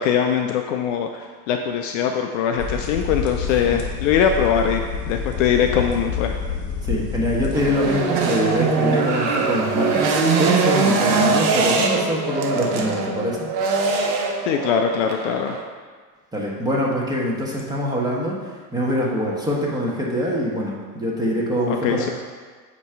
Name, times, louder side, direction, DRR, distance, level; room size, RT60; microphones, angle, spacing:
voice 1, 0.0-6.4 14.5-15.5 21.7-22.1, left 8 dB, 50° left, 4 dB, 0.5 m, -22 dB
sound 1, 2.6-8.0, left 6 dB, 30° left, 1.3 m, -28 dB
voice 2, 6.8-10.0 10.4-13.5 16.3-18.4 18.7-22.1, equal, 10° right, -4 dB, 1.3 m, -24 dB
sound 2, 7.5-15.6, right 4 dB, 50° right, 0.9 m, -22 dB
7.9 x 3.0 x 4.5 m, 1.5 s
hypercardioid pair, 90°, 49 cm